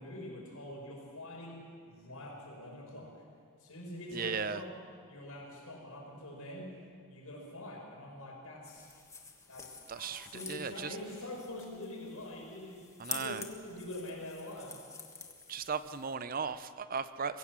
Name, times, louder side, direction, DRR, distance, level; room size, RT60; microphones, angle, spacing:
voice 1, 0.0-3.2 3.6-4.7 5.1-6.8 7.1-8.9 9.5-14.8, left 1 dB, 90° left, -1 dB, 6.3 m, -45 dB
voice 2, 4.1-4.6 9.9-11.0 13.0-13.4 15.5-17.4, right 5 dB, 40° right, 13 dB, 0.7 m, -36 dB
sound 1, 8.6-16.1, left 4 dB, 15° left, 1.5 m, -48 dB
23.5 x 16.0 x 7.5 m, 2.2 s
head